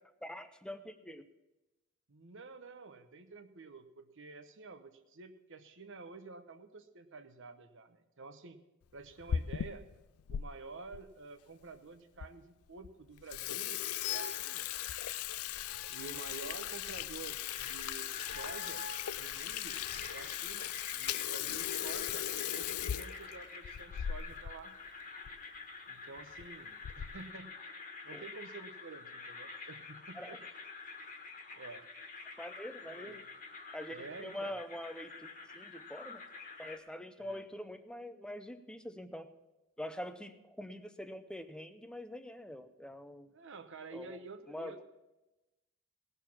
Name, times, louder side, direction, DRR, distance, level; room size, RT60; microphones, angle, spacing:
voice 1, 0.2-1.2 28.1-28.2 30.1-30.4 32.4-33.3 33.7-36.2 36.6-39.3 39.8-43.3 43.9-44.2 44.5-44.8, left 1 dB, 5° left, 10 dB, 0.6 m, -44 dB
voice 2, 2.1-8.6 8.9-9.8 10.3-15.0 15.9-18.9 19.1-19.8 20.1-24.8 25.9-27.5 28.0-30.4 31.5-31.9 33.0-33.2 33.9-34.6 37.2-37.4 43.3-44.8, right 4 dB, 60° right, 9 dB, 1.0 m, -50 dB
Water tap faucet / Sink (filling or washing), 9.0-10.4 10.9-11.0 11.7-11.8 12.2-12.3 12.7-12.9 13.2-24.6 24.9-25.0 25.2-25.4 26.2-26.4 26.8-27.3, left 10 dB, 80° left, 0.4 m, -38 dB
sound 1, 14.0-14.5 15.7-16.9 18.2-19.1, left 7 dB, 55° left, 0.8 m, -44 dB
sound 2, 17.5-36.8, left 4 dB, 40° left, 1.6 m, -48 dB
18.5 x 6.8 x 5.9 m, 1.0 s
head